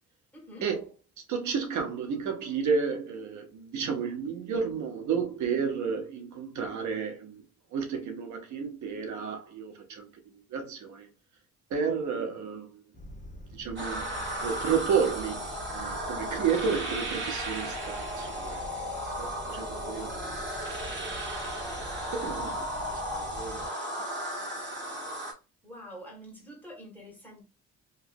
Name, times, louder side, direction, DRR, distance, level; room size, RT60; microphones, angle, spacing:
voice 1, 0.3-0.7 25.6-27.4, equal, 5° left, 1.8 m, -46 dB
voice 2, 1.3-7.4 7.7-11.1 11.7-12.8 13.5-18.6 19.2-20.4 20.7-21.3 22.1-24.0 24.4-24.5, right 6 dB, 75° right, 0.8 m, -32 dB
sound 1, 12.9-23.7, equal, 25° left, 0.9 m, -45 dB
sound 2, 13.8-25.3, equal, 40° right, 1.4 m, -35 dB
2.9 x 2.6 x 2.6 m
cardioid pair, 90°, 30 cm